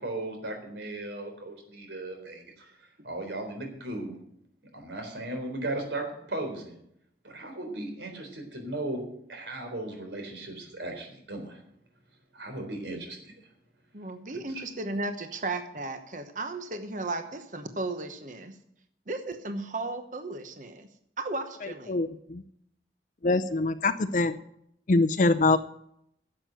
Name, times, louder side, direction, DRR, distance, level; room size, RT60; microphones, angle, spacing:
voice 1, 0.0-2.7 3.0-4.1 4.7-6.7 7.2-9.0 9.3-11.6 12.3-13.3 14.5-14.6, right 2 dB, 85° right, 3 dB, 3.9 m, -36 dB
voice 2, 13.9-18.6 19.1-20.9 21.2-22.0, right 2 dB, 45° right, 8 dB, 1.0 m, -35 dB
voice 3, 21.6-22.4 23.2-24.3 24.9-25.6, left 3 dB, 45° left, 11 dB, 0.5 m, -24 dB
11.0 x 7.7 x 9.1 m, 0.74 s
head